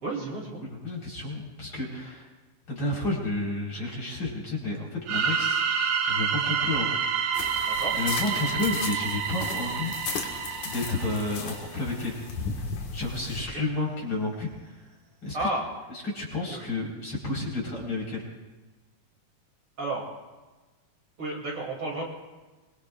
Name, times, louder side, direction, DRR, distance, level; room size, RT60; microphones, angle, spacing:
voice 1, 0.0-0.6 7.6-8.0 13.5-13.6 15.3-15.7 16.5-16.7 19.8-20.1 21.2-22.0, right 2 dB, 45° right, -3 dB, 3.5 m, -32 dB
voice 2, 0.6-2.3 2.7-5.6 6.1-6.9 7.6-7.7 7.9-9.9 10.6-12.2 12.9-14.8 15.2-15.5 15.9-18.2, left 2 dB, 35° left, -3 dB, 5.0 m, -31 dB
sound 1, 5.1-11.7, right 6 dB, 65° right, 2.3 m, -28 dB
sound 2, 7.3-13.4, left 5 dB, 65° left, 2.9 m, -36 dB
26.5 x 22.0 x 2.5 m, 1.2 s
omnidirectional pair, 3.8 m